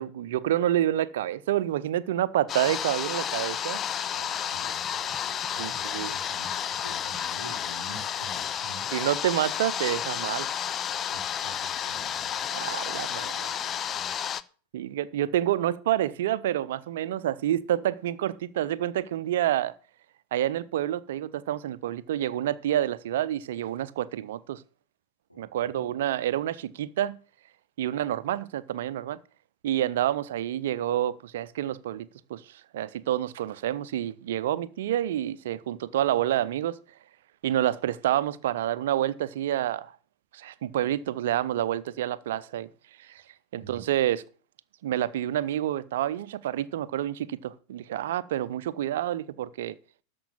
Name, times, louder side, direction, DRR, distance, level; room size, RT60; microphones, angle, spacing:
voice 1, 0.0-3.8 5.6-6.1 8.9-10.5 12.5-13.5 14.7-19.7 20.3-24.6 25.4-27.2 27.8-29.2 29.6-36.8 37.4-39.9 40.3-42.7 43.0-43.2 43.5-44.2 44.8-49.7, right 12 dB, 55° right, 0.6 m, -28 dB
sound 1, 2.5-14.4, left 9 dB, 25° left, 0.5 m, -31 dB
voice 2, 4.1-8.8 11.0-12.4 13.2-14.1 25.3-25.8 43.5-43.8, right 2 dB, 85° left, 3.7 m, -48 dB
13.0 x 5.3 x 7.2 m
figure-of-eight pair, 90°, 0 cm